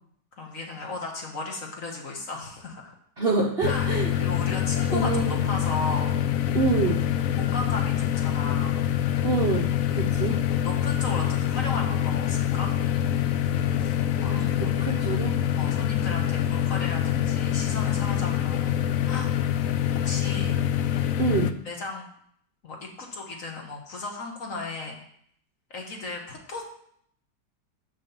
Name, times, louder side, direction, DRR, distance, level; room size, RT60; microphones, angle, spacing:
voice 1, 0.3-2.9 3.6-6.1 7.4-8.8 9.8-10.0 10.6-12.7 13.8-14.3 14.6-14.8 15.5-18.8 19.1-19.3 19.9-20.6 21.6-22.0 22.6-25.0 25.7-26.6, left 3 dB, 50° left, 1 dB, 1.7 m, -35 dB
voice 2, 3.2-4.1 4.9-5.5 6.5-7.0 9.2-10.4 14.2-15.3 21.2-21.5, right 4 dB, 45° right, 0 dB, 0.8 m, -27 dB
sound 1, 3.6-21.5, left 10 dB, 70° left, 0.8 m, -25 dB
6.1 x 5.9 x 6.9 m, 0.67 s
omnidirectional pair, 1.8 m